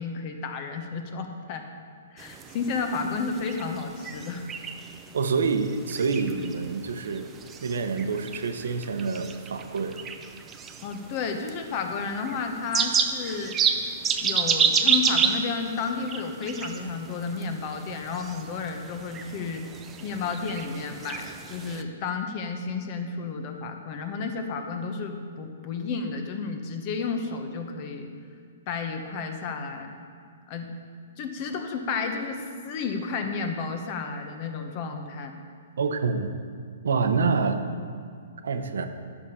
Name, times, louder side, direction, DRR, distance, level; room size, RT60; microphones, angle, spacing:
voice 1, 0.0-1.7 2.1-4.4 10.8-13.5 14.2-19.6 20.0-28.1 28.7-29.9 30.5-30.7 31.2-35.3, left 4 dB, 35° left, 5 dB, 1.0 m, -32 dB
sound 1, 2.2-21.8, right 6 dB, 15° right, 0.5 m, -31 dB
voice 2, 5.1-7.3 7.6-10.0 35.8-36.3 36.8-37.6 38.4-38.9, right 4 dB, 80° right, 7 dB, 0.9 m, -27 dB
9.9 x 6.8 x 5.6 m, 2.1 s
hypercardioid pair, 160°, 0 cm